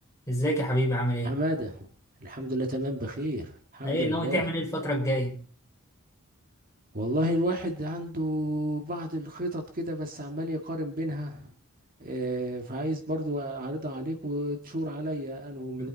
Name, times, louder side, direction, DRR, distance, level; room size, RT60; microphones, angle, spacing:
voice 1, 0.3-1.3 3.8-5.3 15.8-15.9, equal, 15° left, -1 dB, 4.3 m, -27 dB
voice 2, 1.2-1.9 2.2-4.5 6.9-11.5 12.0-15.9, right 1 dB, 40° right, 4 dB, 1.8 m, -31 dB
24.0 x 9.0 x 4.1 m, 0.40 s
head